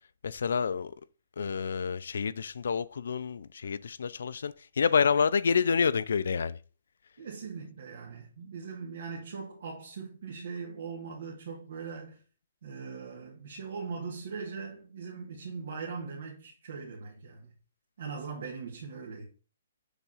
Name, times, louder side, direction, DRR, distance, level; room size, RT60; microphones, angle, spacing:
voice 1, 0.2-0.9 1.4-6.6, left 6 dB, 70° left, 0.4 m, -28 dB
voice 2, 7.2-12.2 12.6-17.5 18.0-19.3, right 5 dB, 55° right, 1.7 m, -40 dB
7.2 x 3.6 x 5.6 m
hypercardioid pair, 180°, 0 cm